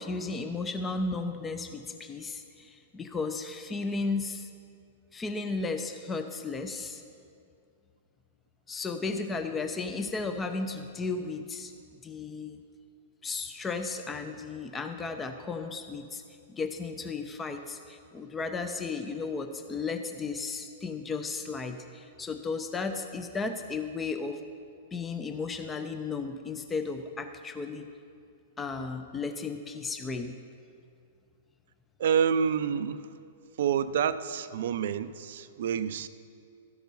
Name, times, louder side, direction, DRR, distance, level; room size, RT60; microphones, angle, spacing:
voice 1, 0.0-4.5 5.1-7.0 8.7-11.7 12.0-12.6 13.2-16.2 16.5-24.4 24.9-27.9 28.6-30.3, left 4 dB, 15° left, 7 dB, 0.6 m, -34 dB
voice 2, 32.0-33.1 33.6-36.1, right 7 dB, 65° right, 14 dB, 0.4 m, -28 dB
13.0 x 5.9 x 5.3 m, 2.3 s
hypercardioid pair, 120°, 0 cm